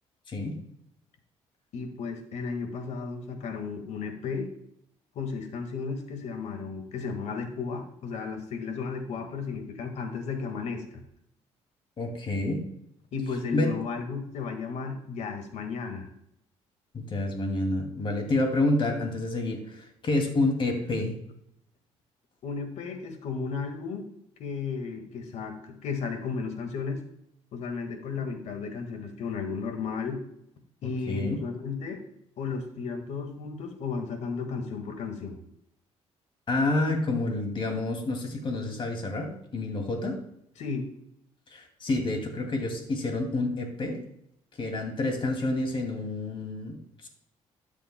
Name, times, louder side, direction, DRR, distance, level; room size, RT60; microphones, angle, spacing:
voice 1, 0.3-0.6 12.0-12.6 13.5-13.7 16.9-21.1 30.8-31.4 36.5-40.2 41.5-44.0 44.6-46.8 47.0-47.1, left 2 dB, 45° left, 3 dB, 2.4 m, -28 dB
voice 2, 1.7-4.5 5.1-11.0 13.1-16.1 22.4-24.1 24.4-27.0 27.5-30.2 30.8-32.0 32.4-35.4 40.6-40.9, left 5 dB, 70° left, 6 dB, 1.7 m, -34 dB
12.5 x 7.3 x 2.2 m, 0.75 s
cardioid pair, 85°, 12 cm